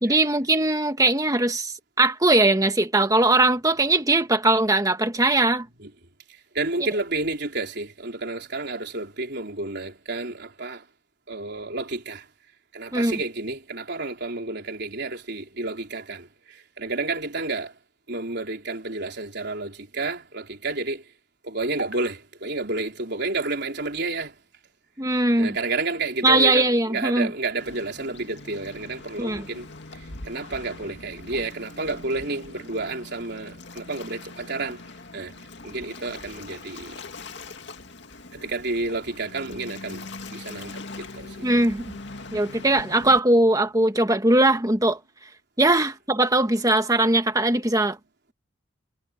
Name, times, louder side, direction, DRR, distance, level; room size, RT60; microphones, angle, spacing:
voice 1, 0.0-5.7 12.9-13.2 25.0-25.5 26.2-27.3 29.2-29.4 41.4-41.9 42.3-45.0 45.6-48.0, right 2 dB, 15° right, 1.6 m, -20 dB
voice 2, 6.5-10.8 11.3-12.2 12.7-16.3 16.8-17.7 18.1-21.0 21.4-24.3 25.4-29.7 30.3-34.8 35.1-35.3 35.6-36.9 38.4-40.0 40.3-41.3 45.7-45.8, right 3 dB, 55° right, 4.5 m, -30 dB
Waves surf, 27.6-43.2, left 3 dB, 60° left, 2.4 m, -42 dB
head